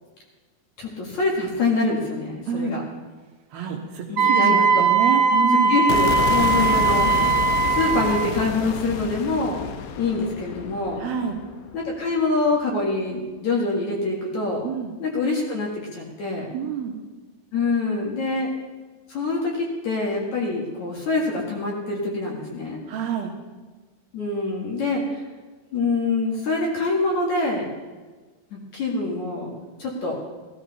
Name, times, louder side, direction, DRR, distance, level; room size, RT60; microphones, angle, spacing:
voice 1, 0.8-2.8 4.1-4.8 5.7-7.1 7.7-9.6 10.0-11.0 11.7-14.7 15.0-16.5 17.5-18.5 19.1-22.8 24.1-25.2 25.7-27.7 28.5-30.2, left 3 dB, 50° left, -2 dB, 2.7 m, -25 dB
voice 2, 2.5-2.8 3.5-5.8 6.6-6.9 11.0-11.4 14.6-14.9 16.5-16.9 22.9-23.3, right 7 dB, 70° right, 1 dB, 2.7 m, -28 dB
Wind instrument woodwind instrument, 4.2-8.3, right 4 dB, 85° right, 1.5 m, -19 dB
sound 1, 5.9-12.1, left 7 dB, 85° left, 3.2 m, -29 dB
16.0 x 13.5 x 4.1 m, 1.3 s
omnidirectional pair, 4.9 m